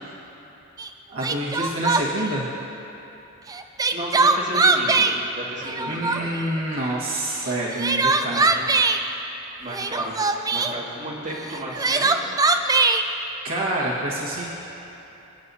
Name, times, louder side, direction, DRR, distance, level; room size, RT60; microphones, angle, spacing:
Crying sobbing, 0.8-0.9 1.2-2.3 3.5-5.2 5.6-6.4 7.5-9.0 9.7-10.7 11.5-13.0, right 3 dB, 15° right, 0.4 m, -21 dB
voice 1, 1.1-2.5 5.9-8.5 13.4-14.4, right 1 dB, 70° right, -6 dB, 1.6 m, -27 dB
voice 2, 3.9-5.1 5.3-6.3 8.4-8.7 9.6-10.2 10.5-12.2, right 1 dB, 40° right, -6 dB, 2.3 m, -33 dB
24.0 x 9.4 x 2.8 m, 3.0 s
head